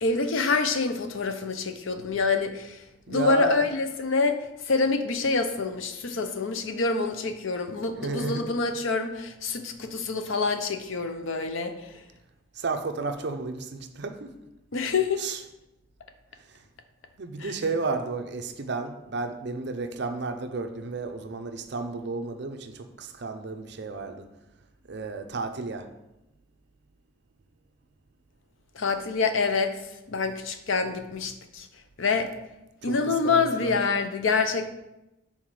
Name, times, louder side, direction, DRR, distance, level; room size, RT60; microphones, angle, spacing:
voice 1, 0.0-2.8 3.1-4.4 4.6-12.0 14.7-15.2 17.4-17.6 28.8-29.7 30.1-31.7 32.0-32.3 32.8-34.7, left 4 dB, 70° left, 7 dB, 0.6 m, -26 dB
voice 2, 3.1-3.6 8.0-8.5 12.6-14.3 15.2-15.4 17.2-24.3 24.9-25.9 32.8-33.7, right 3 dB, 55° right, 6 dB, 0.5 m, -32 dB
5.8 x 4.1 x 4.7 m, 0.93 s
head